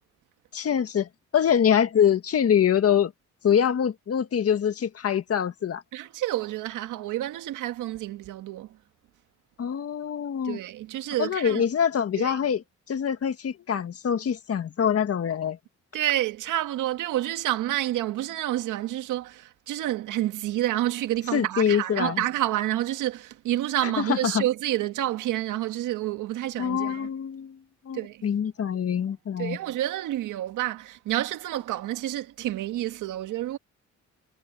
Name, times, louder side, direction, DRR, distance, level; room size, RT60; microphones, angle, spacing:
voice 1, 0.5-3.1 3.4-5.8 9.6-10.6 11.2-12.6 12.9-15.6 21.3-22.2 23.8-24.4 26.6-27.6 27.9-29.6, left 8 dB, 50° left, 1.8 m, -24 dB
voice 2, 5.9-8.8 10.4-11.7 12.2-12.4 15.9-27.1 27.9-28.2 29.4-33.6, right 14 dB, 85° right, 1.9 m, -29 dB
cardioid pair, 90°, 30 cm